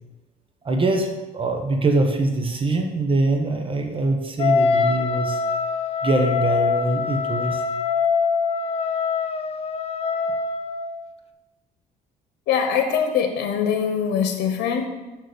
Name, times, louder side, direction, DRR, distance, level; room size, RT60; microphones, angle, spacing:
voice 1, 0.6-5.4 6.0-7.6, right 2 dB, 30° right, 3 dB, 1.1 m, -23 dB
Wind instrument woodwind instrument, 4.4-11.0, left 5 dB, 35° left, 0.7 m, -24 dB
voice 2, 12.5-14.9, left 7 dB, 75° left, 5 dB, 1.2 m, -22 dB
6.6 x 6.1 x 6.9 m, 1.1 s
cardioid pair, 110°, 17 cm